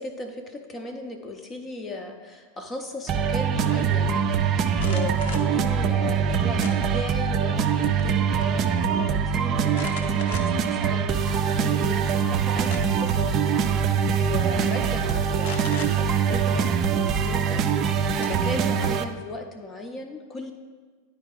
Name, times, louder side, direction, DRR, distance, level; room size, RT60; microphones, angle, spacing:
voice 1, 0.0-13.4 14.2-20.5, left 2 dB, 20° left, 4 dB, 0.6 m, -37 dB
sound 1, 3.1-19.0, right 7 dB, 30° right, 0.4 m, -23 dB
sound 2, 4.7-5.5 6.6-7.2 7.6-8.1 8.4-8.5 9.7-10.7 11.3-11.4 12.4-13.1 14.1-14.3 14.6-14.8 15.4-15.9 17.7-17.8 18.2-19.1, left 5 dB, 55° left, 0.8 m, -38 dB
10.0 x 4.6 x 3.7 m, 1.5 s
figure-of-eight pair, 90°, 0 cm